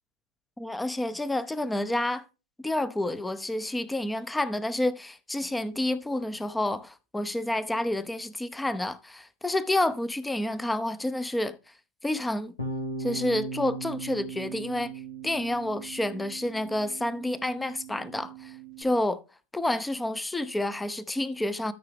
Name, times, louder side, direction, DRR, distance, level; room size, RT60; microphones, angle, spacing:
voice 1, 0.6-2.2 2.6-11.6 12.0-12.5 13.0-14.9 15.2-19.2 19.5-21.7, left 1 dB, 5° left, 0.8 m, -29 dB
Bass guitar, 12.6-18.8, right 4 dB, 70° left, 1.8 m, -38 dB
13.0 x 5.6 x 3.5 m
figure-of-eight pair, 90°, 0 cm